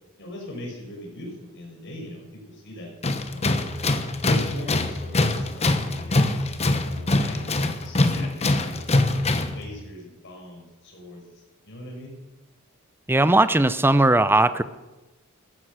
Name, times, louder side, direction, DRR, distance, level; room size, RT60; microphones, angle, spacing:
voice 1, 0.2-2.9 3.3-3.5 4.2-6.5 6.8-8.8 9.5-12.1, left 1 dB, 55° left, 0 dB, 5.5 m, -40 dB
Tools, 3.0-9.6, left 2 dB, 30° left, 1.1 m, -23 dB
voice 2, 13.1-14.6, right 2 dB, 10° right, 13 dB, 0.6 m, -18 dB
14.5 x 13.5 x 6.3 m, 1.1 s
head